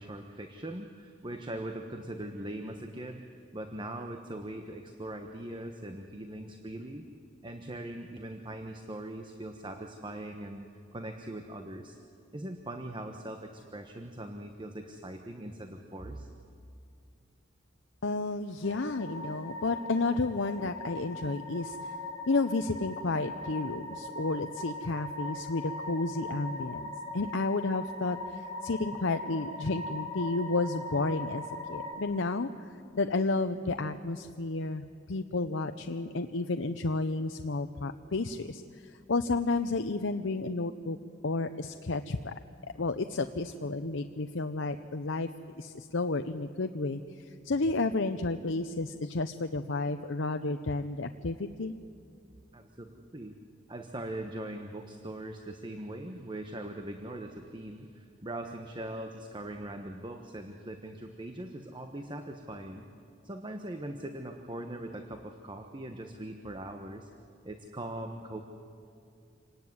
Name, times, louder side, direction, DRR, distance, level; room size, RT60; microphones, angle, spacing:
voice 1, 0.0-3.2 3.5-7.1 7.4-10.7 10.9-12.0 12.3-16.3 52.5-53.3 53.7-62.9 63.2-67.1 67.4-68.4, right 1 dB, 25° right, 5 dB, 1.2 m, -41 dB
voice 2, 18.0-21.9 22.3-41.0 41.2-42.3 42.6-45.3 45.6-51.7, left 3 dB, 70° left, 8 dB, 0.8 m, -32 dB
sound 1, 18.6-31.9, left 2 dB, 20° left, 4.0 m, -40 dB
27.0 x 18.5 x 9.5 m, 2.5 s
head